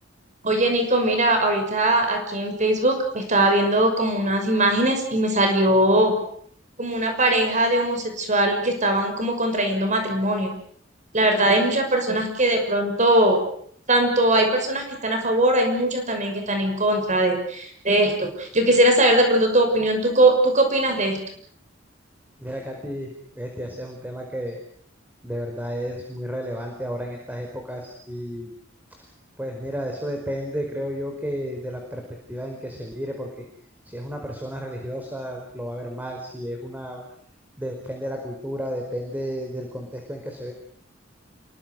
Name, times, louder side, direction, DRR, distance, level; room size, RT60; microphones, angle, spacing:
voice 1, 0.4-6.1 6.8-10.5 11.1-13.4 13.9-21.2, right 1 dB, 40° right, 5 dB, 6.2 m, -20 dB
voice 2, 22.4-23.1 23.3-24.6 25.2-28.5 29.0-29.1 29.4-32.0 32.3-33.5 33.8-37.0 37.6-40.5, equal, 10° right, 2 dB, 4.8 m, -32 dB
28.5 x 23.5 x 6.4 m, 0.63 s
head